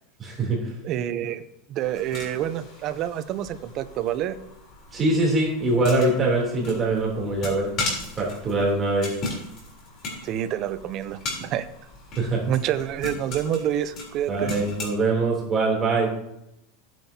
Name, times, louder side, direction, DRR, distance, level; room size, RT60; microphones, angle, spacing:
voice 1, 0.2-0.6 4.9-7.7 8.2-9.1 12.1-12.4 14.3-16.1, right 2 dB, 20° right, -3 dB, 3.2 m, -23 dB
voice 2, 0.8-1.4 1.7-4.4 10.2-11.7 12.5-14.5, right 11 dB, 35° right, 11 dB, 0.7 m, -28 dB
sound 1, 1.8-14.9, left 2 dB, 35° left, 3.7 m, -37 dB
15.0 x 9.1 x 2.8 m, 0.82 s
supercardioid pair, 160°, 0 cm